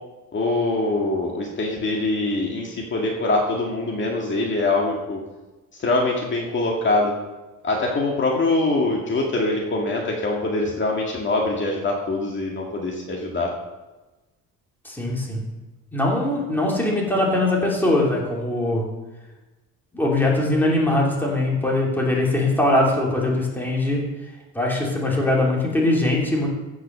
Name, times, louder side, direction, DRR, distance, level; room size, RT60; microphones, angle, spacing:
voice 1, 0.3-5.2 5.8-7.1 7.6-13.5, left 2 dB, 35° left, -1 dB, 2.1 m, -23 dB
voice 2, 14.8-15.5 15.9-18.9 19.9-24.1 24.5-26.5, left 1 dB, 5° left, -3 dB, 2.9 m, -21 dB
15.5 x 6.2 x 6.7 m, 1.1 s
cardioid pair, 155°, 32 cm